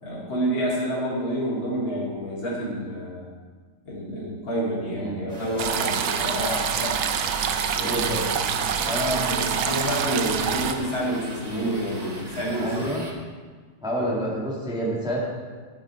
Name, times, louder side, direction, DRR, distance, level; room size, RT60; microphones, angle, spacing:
voice 1, 0.0-3.3 3.9-7.0 7.7-8.6 9.1-12.9 14.0-14.1, equal, 65° left, -5 dB, 3.6 m, -29 dB
voice 2, 5.0-5.4 7.8-8.2 8.9-9.2 9.5-9.7 11.5-11.7 12.6-13.0 13.8-15.2, equal, ahead, -4 dB, 1.9 m, -29 dB
sound 1, 5.3-13.1, right 1 dB, 20° right, 1.3 m, -39 dB
sound 2, 5.6-10.7, right 8 dB, 70° right, 1.5 m, -26 dB
12.0 x 9.3 x 4.5 m, 1.5 s
omnidirectional pair, 2.3 m